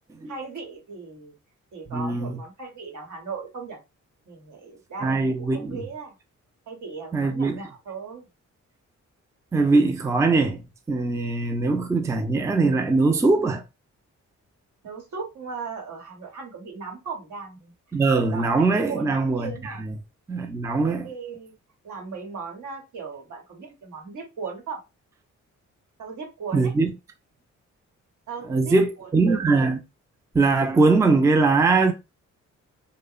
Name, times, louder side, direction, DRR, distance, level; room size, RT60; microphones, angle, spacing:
voice 1, 0.3-1.3 1.7-3.8 4.3-6.1 6.7-8.3 14.8-17.7 18.2-19.8 21.0-21.5 21.8-24.8 26.0-26.7 28.3-29.7, right 5 dB, 80° right, 1.0 m, -37 dB
voice 2, 1.9-2.4 5.0-5.8 7.1-7.6 9.5-10.6 10.9-13.6 17.9-19.9 20.3-21.1 26.5-26.9 28.5-29.8 30.3-31.9, right 3 dB, 10° right, 0.3 m, -21 dB
2.8 x 2.0 x 2.3 m
cardioid pair, 90°, 30 cm